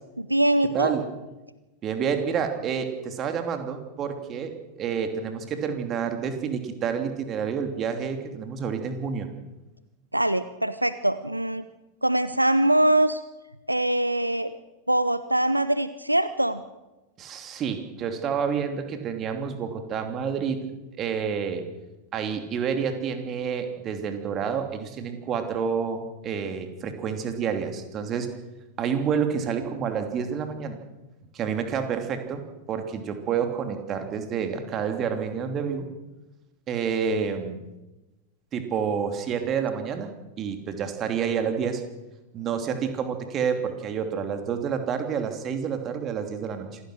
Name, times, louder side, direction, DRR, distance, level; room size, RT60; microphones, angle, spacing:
voice 1, 0.2-0.9 10.1-11.6 12.0-13.2 13.7-14.5 14.9-16.6, right 1 dB, 85° right, 14 dB, 0.7 m, -23 dB
voice 2, 1.8-9.3 17.2-20.6 21.0-21.6 22.1-28.3 28.8-30.8 31.3-32.4 32.7-35.9 36.7-37.6 38.5-41.8 42.3-46.8, right 7 dB, 30° right, 6 dB, 2.9 m, -29 dB
26.5 x 16.0 x 6.5 m, 1.1 s
figure-of-eight pair, 90°, 0 cm